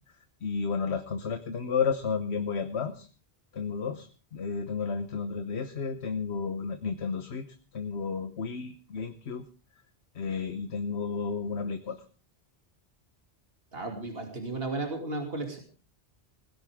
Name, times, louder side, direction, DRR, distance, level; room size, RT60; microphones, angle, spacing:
voice 1, 0.4-3.1 3.5-4.1 4.3-7.4 7.7-9.4 10.1-12.0, left 5 dB, 80° left, 9 dB, 1.4 m, -32 dB
voice 2, 13.7-15.6, right 2 dB, 65° right, 3 dB, 3.1 m, -34 dB
20.5 x 16.5 x 3.6 m, 0.35 s
omnidirectional pair, 1.1 m